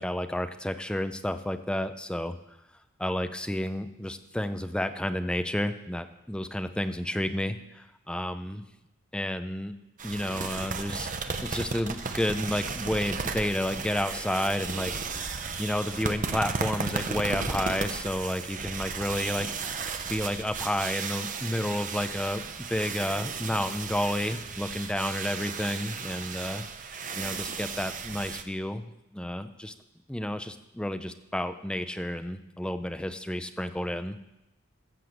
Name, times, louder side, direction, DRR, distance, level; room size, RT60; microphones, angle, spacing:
voice 1, 0.0-2.4 3.0-8.6 9.1-9.7 10.0-11.1 11.4-28.8 29.1-29.7 30.1-34.2, left 1 dB, 5° left, 8 dB, 0.5 m, -31 dB
sound 1, 10.0-28.4, right 5 dB, 40° right, 0.8 m, -35 dB
13.5 x 6.9 x 7.9 m, 0.92 s
head